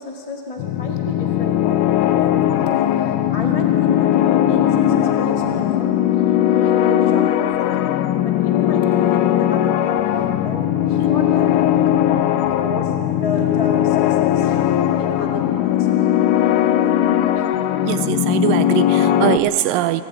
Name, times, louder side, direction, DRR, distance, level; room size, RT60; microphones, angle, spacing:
voice 1, 0.0-5.9 6.5-8.0 8.2-12.2 12.6-16.1 16.8-16.9 17.3-17.5, left 2 dB, 15° left, 0 dB, 1.4 m, -32 dB
sound 1, 0.6-19.4, left 11 dB, 75° left, 2.1 m, -18 dB
voice 2, 17.8-20.0, right 13 dB, 90° right, 13 dB, 2.4 m, -21 dB
24.5 x 16.5 x 8.9 m, 2.8 s
omnidirectional pair, 3.9 m